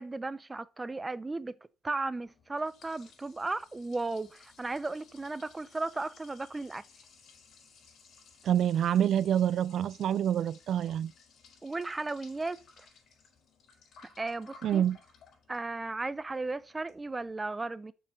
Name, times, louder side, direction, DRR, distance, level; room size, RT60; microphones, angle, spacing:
voice 1, 0.0-1.5 1.8-6.8 11.6-12.9 14.2-14.8 15.5-17.9, right 3 dB, 20° right, 0.6 m, -35 dB
Liquid, 2.2-17.3, left 5 dB, 70° left, 4.3 m, -59 dB
voice 2, 8.5-11.1 14.6-15.0, right 10 dB, 70° right, 0.4 m, -27 dB
6.7 x 5.9 x 6.3 m
cardioid pair, 90°, 0 cm